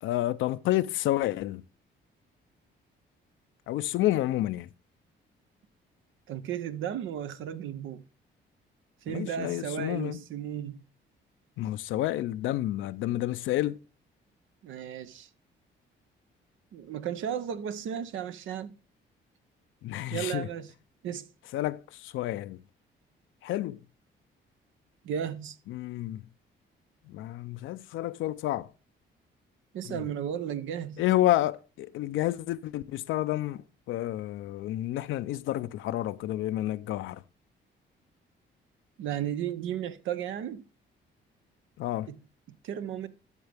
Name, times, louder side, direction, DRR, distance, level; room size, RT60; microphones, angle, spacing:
voice 1, 0.0-1.6 3.7-4.7 9.1-10.2 11.6-13.8 19.8-20.5 21.5-22.6 23.4-23.8 25.7-26.2 27.1-28.7 29.8-30.0 31.0-33.6 33.9-37.2 41.8-42.1, left 14 dB, 80° left, 0.4 m, -30 dB
voice 2, 6.3-8.0 9.0-10.8 14.6-15.3 16.7-18.7 20.1-20.7 21.0-21.3 25.0-25.6 29.7-31.0 39.0-40.6 42.1-42.2 42.5-43.1, right 9 dB, 80° right, 0.7 m, -34 dB
12.5 x 6.6 x 3.4 m
cardioid pair, 90°, 20 cm